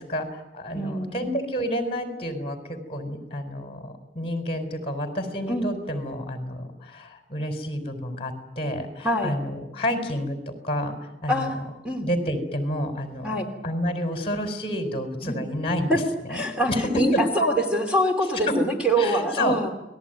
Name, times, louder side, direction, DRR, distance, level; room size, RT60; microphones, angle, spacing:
voice 1, 0.0-11.5 12.0-16.0 16.3-17.2 18.5-18.6 19.0-19.6, left 1 dB, 30° left, 6 dB, 4.5 m, -29 dB
voice 2, 0.7-1.2 5.5-5.7 9.0-9.3 11.3-11.6 11.8-12.1 13.2-13.5 15.2-15.4 15.9-16.0 16.3-16.7 16.9-19.7, right 1 dB, 5° right, 2 dB, 2.7 m, -24 dB
30.0 x 20.5 x 9.2 m, 0.94 s
head